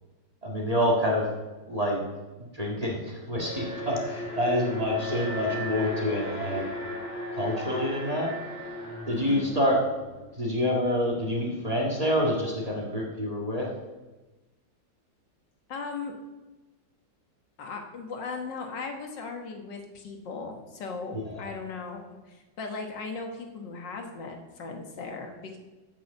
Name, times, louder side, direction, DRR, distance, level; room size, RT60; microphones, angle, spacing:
voice 1, 0.4-1.3 1.7-2.0 2.5-6.6 7.3-8.3 9.1-9.9 10.4-13.7 21.1-21.3, left 1 dB, 20° right, -2 dB, 1.9 m, -27 dB
Alarm, 3.4-10.5, left 1 dB, 30° left, 3.1 m, -36 dB
voice 2, 9.1-9.5 15.7-16.1 17.6-25.6, left 4 dB, 70° left, 3 dB, 2.0 m, -38 dB
8.3 x 7.3 x 7.0 m, 1.1 s
omnidirectional pair, 2.0 m